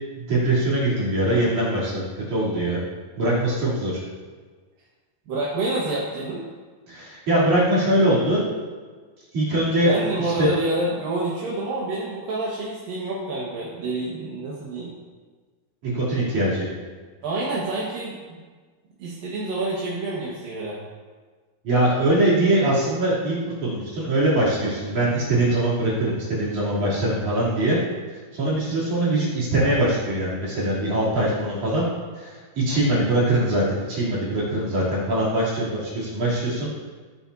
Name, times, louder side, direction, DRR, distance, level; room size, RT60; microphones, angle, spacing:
voice 1, 0.2-2.8 3.2-4.0 6.9-8.4 9.3-10.5 15.8-16.7 21.6-27.8 28.3-31.9 32.1-36.9, right 1 dB, 55° right, -8 dB, 4.6 m, -22 dB
voice 2, 5.3-6.4 9.8-14.9 17.2-18.4 19.0-20.8, right 2 dB, 70° right, -6 dB, 3.2 m, -28 dB
18.5 x 8.6 x 2.8 m, 1.4 s
omnidirectional pair, 4.3 m